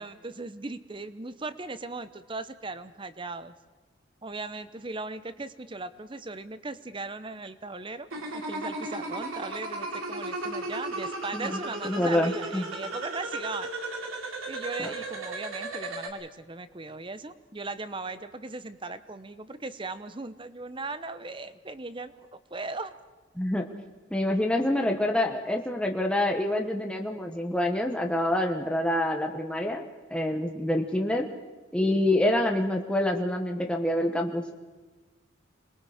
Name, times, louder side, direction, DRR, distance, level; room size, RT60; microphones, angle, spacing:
voice 1, 0.0-3.5 4.2-13.7 14.5-23.0 24.7-24.9, right 3 dB, 25° right, 13 dB, 0.7 m, -38 dB
sound 1, 8.1-16.1, right 2 dB, 90° right, 2.8 m, -35 dB
voice 2, 11.3-12.7 14.8-14.9 23.4-23.6 24.1-29.8 30.1-31.3 31.7-34.4, left 1 dB, 5° left, 2 dB, 1.0 m, -26 dB
27.0 x 21.5 x 5.0 m, 1.3 s
head